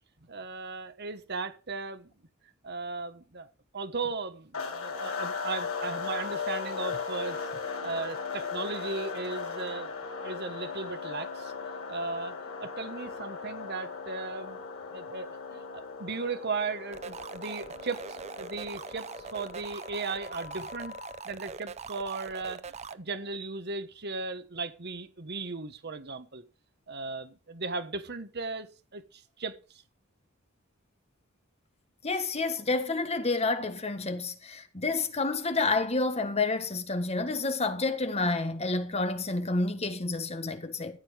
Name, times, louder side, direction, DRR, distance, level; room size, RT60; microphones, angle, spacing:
voice 1, 0.3-2.1 2.6-9.9 10.2-11.5 11.9-14.6 14.9-20.9 21.2-22.6 22.9-26.4 26.9-29.8, right 4 dB, 50° right, 1.3 m, -37 dB
sound 1, 4.5-21.2, left 5 dB, 80° left, 3.0 m, -38 dB
sound 2, 16.9-22.9, right 5 dB, 30° right, 0.6 m, -42 dB
voice 2, 32.0-41.0, left 3 dB, 30° left, 1.4 m, -29 dB
14.0 x 7.7 x 5.1 m
head